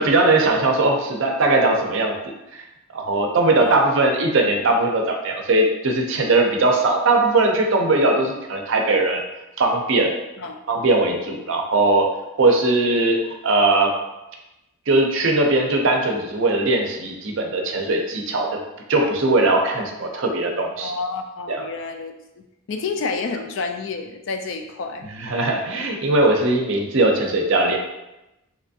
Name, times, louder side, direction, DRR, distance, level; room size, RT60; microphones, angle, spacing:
voice 1, 0.0-2.2 2.5-2.7 2.9-9.2 9.6-10.1 10.7-12.1 12.4-13.9 14.9-18.6 18.9-20.9 21.5-21.7 25.1-27.8, right 2 dB, 60° right, 2 dB, 0.5 m, -19 dB
voice 2, 3.6-3.9 10.4-10.6 20.8-25.1, left 4 dB, 55° left, 6 dB, 0.3 m, -30 dB
3.3 x 2.9 x 2.6 m, 0.95 s
head